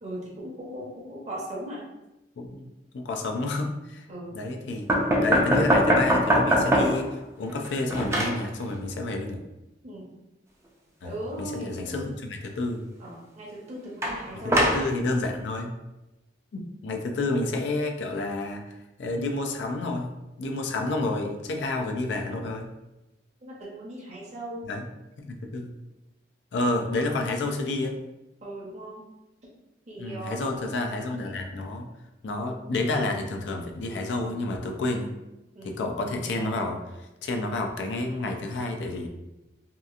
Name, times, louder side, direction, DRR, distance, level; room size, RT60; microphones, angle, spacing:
voice 1, 0.0-1.8 4.1-4.3 9.8-10.1 11.0-12.1 13.0-14.7 23.4-24.7 28.4-29.0 29.9-30.6 35.5-35.8, right 1 dB, 40° right, -5 dB, 0.7 m, -38 dB
voice 2, 2.9-4.1 4.3-4.9 5.2-9.4 11.0-12.9 14.3-15.7 16.5-18.6 19.0-20.1 20.4-22.7 24.6-24.9 25.2-25.7 26.5-28.0 30.0-31.9 32.2-35.1 35.6-36.8 37.2-39.1, left 2 dB, 85° left, 3 dB, 0.4 m, -29 dB
sound 1, 4.9-7.1 7.5-8.4 14.0-14.9, equal, 15° right, 0.4 m, -22 dB
2.8 x 2.3 x 2.4 m, 0.97 s
head